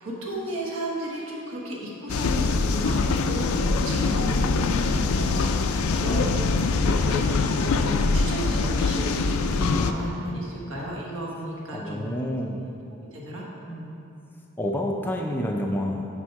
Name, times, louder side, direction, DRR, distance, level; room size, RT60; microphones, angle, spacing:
voice 1, 0.0-6.5 6.8-12.1 13.1-13.9, equal, 65° right, -3 dB, 1.3 m, -34 dB
sound 1, 2.1-9.9, left 4 dB, 80° left, 0.4 m, -23 dB
voice 2, 4.0-4.3 5.8-6.5 11.7-12.6 14.6-16.1, equal, 10° left, 0 dB, 0.4 m, -29 dB
6.2 x 5.3 x 4.5 m, 2.7 s
head